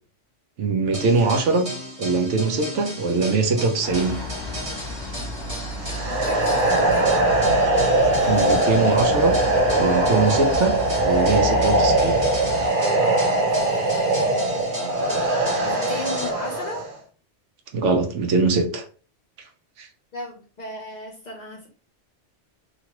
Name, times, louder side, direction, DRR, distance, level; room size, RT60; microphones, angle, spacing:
voice 1, 0.6-1.7 2.0-4.2 8.3-9.4 9.7-12.2 17.7-18.8 19.8-19.9, right 3 dB, 80° right, 4 dB, 1.0 m, -22 dB
sound 1, 0.9-16.3, right 1 dB, 25° right, 1.1 m, -35 dB
sound 2, 3.8-12.7, left 3 dB, 25° left, 0.8 m, -32 dB
sound 3, 5.8-16.9, right 2 dB, 50° right, 0.8 m, -21 dB
voice 2, 6.1-7.2 13.5-14.7 15.6-16.9 20.1-21.7, left 2 dB, 50° left, 0 dB, 0.5 m, -36 dB
2.9 x 2.5 x 2.9 m, 0.38 s
omnidirectional pair, 1.2 m